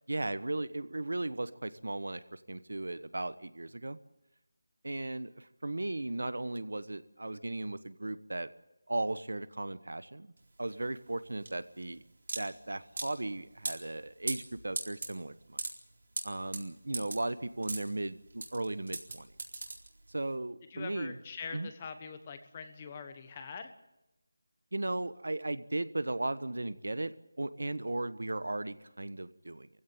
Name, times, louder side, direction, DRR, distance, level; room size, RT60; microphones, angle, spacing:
voice 1, 0.1-4.0 4.8-8.5 8.9-10.3 10.6-12.0 12.3-15.6 16.2-19.3 20.1-21.2 21.5-21.7 24.7-29.7, right 2 dB, 80° right, 15 dB, 1.2 m, -36 dB
sound 1, 10.4-20.3, right 2 dB, 60° right, 4.2 m, -40 dB
voice 2, 20.7-23.7, left 5 dB, 20° left, 8 dB, 1.3 m, -43 dB
22.0 x 16.0 x 9.0 m, 0.94 s
figure-of-eight pair, 170°, 0 cm